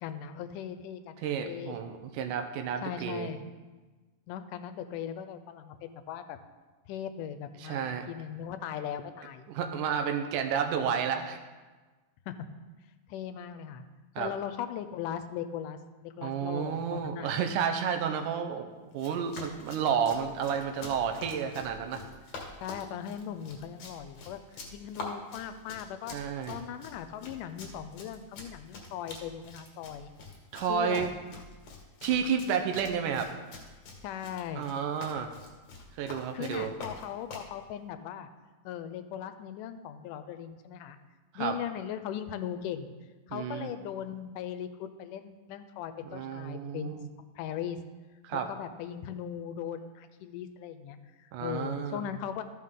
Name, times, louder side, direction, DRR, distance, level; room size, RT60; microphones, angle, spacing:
voice 1, 0.0-1.8 2.8-3.4 4.3-6.4 6.9-9.5 12.3-12.4 13.1-13.9 14.2-17.3 22.6-24.4 24.7-26.2 26.5-30.1 30.7-31.1 34.0-34.7 36.3-38.3 38.7-41.0 41.4-42.9 43.3-47.0 47.4-47.8 48.3-52.4, left 9 dB, 90° left, 11 dB, 2.2 m, -39 dB
voice 2, 1.2-3.3 7.6-8.1 9.5-11.4 14.2-14.3 16.2-18.7 18.9-22.0 26.1-26.6 30.5-31.1 32.0-33.3 34.6-35.3 36.0-36.7 41.3-41.6 43.3-43.7 46.0-47.1 48.2-48.5 51.3-52.1, right 7 dB, 85° right, 5 dB, 2.3 m, -31 dB
Run, 18.9-37.5, left 3 dB, 60° left, 2.4 m, -46 dB
13.0 x 6.1 x 3.7 m, 1.3 s
omnidirectional pair, 3.6 m